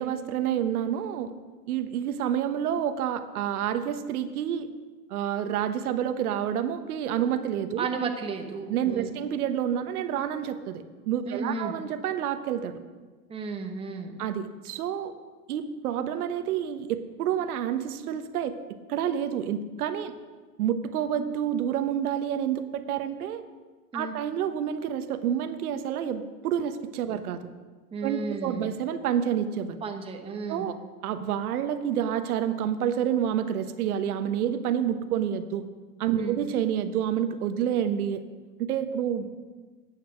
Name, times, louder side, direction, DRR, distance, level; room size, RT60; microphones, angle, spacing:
voice 1, 0.0-1.3 1.7-4.7 5.1-7.9 8.7-12.8 14.2-15.1 15.5-18.6 18.9-20.1 20.6-23.4 23.9-27.4 28.0-29.8 30.5-30.8 31.0-35.7 36.0-38.2 38.6-39.3, right 9 dB, 65° right, 10 dB, 1.1 m, -28 dB
voice 2, 7.8-9.1 11.3-11.7 13.3-14.2 23.9-24.1 27.9-28.7 29.8-30.8 36.1-36.4, right 4 dB, 10° right, 4 dB, 0.9 m, -33 dB
10.5 x 8.6 x 6.2 m, 1.3 s
hypercardioid pair, 120°, 49 cm